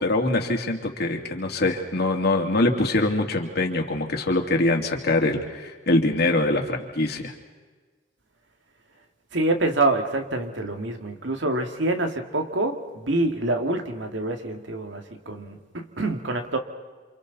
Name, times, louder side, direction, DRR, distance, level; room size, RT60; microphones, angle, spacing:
voice 1, 0.0-7.3, left 2 dB, 60° left, 2 dB, 2.7 m, -23 dB
voice 2, 9.3-16.6, right 2 dB, 75° right, 5 dB, 2.3 m, -26 dB
29.0 x 27.5 x 4.1 m, 1.4 s
head